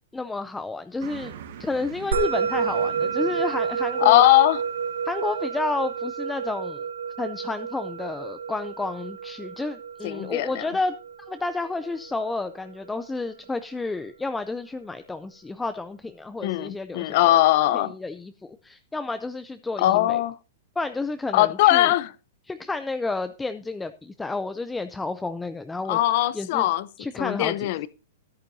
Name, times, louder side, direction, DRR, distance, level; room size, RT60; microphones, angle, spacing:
voice 1, 0.1-1.3 1.6-4.2 5.0-6.9 7.2-17.4 17.7-20.2 20.8-21.9 22.5-26.0 26.3-26.7 27.0-27.7, left 3 dB, 5° left, 0.4 m, -31 dB
Car passing by, 1.0-6.0, right 9 dB, 60° right, 1.6 m, -44 dB
Musical instrument, 2.1-12.7, right 6 dB, 90° right, 1.1 m, -30 dB
voice 2, 4.0-4.6 10.0-10.6 16.4-17.9 19.8-20.3 21.3-22.1 25.9-26.9 27.2-27.9, left 15 dB, 45° left, 0.7 m, -20 dB
13.5 x 10.5 x 2.7 m
hypercardioid pair, 160°, 0 cm